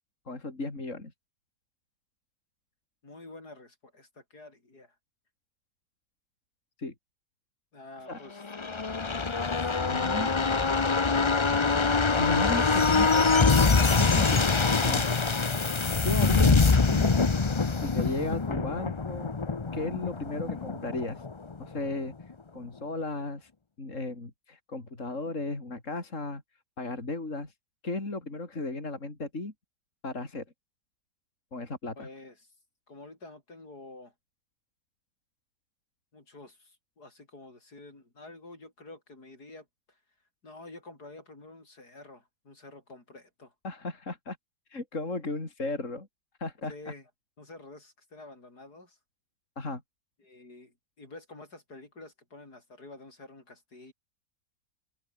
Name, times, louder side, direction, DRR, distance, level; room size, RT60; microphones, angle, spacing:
voice 1, 0.3-1.1 6.8-6.9 8.1-8.2 9.8-10.3 12.2-13.2 13.9-15.4 16.0-17.1 17.8-19.3 19.7-21.2 21.6-22.1 22.5-23.5 23.8-26.4 26.8-27.5 27.8-29.5 30.0-30.4 31.5-32.1 43.6-44.4 44.7-46.1 46.4-46.9 49.6-49.8, left 2 dB, 45° left, 4.5 m, -35 dB
voice 2, 3.0-4.9 7.7-8.4 9.4-10.0 32.0-32.5 32.9-34.1 36.1-40.0 40.4-43.5 46.7-47.1 47.4-49.0 50.2-53.9, left 2 dB, 65° left, 6.3 m, -49 dB
sound 1, 8.4-21.9 22.2-22.3, left 4 dB, 30° left, 0.5 m, -24 dB
omnidirectional pair, 1.8 m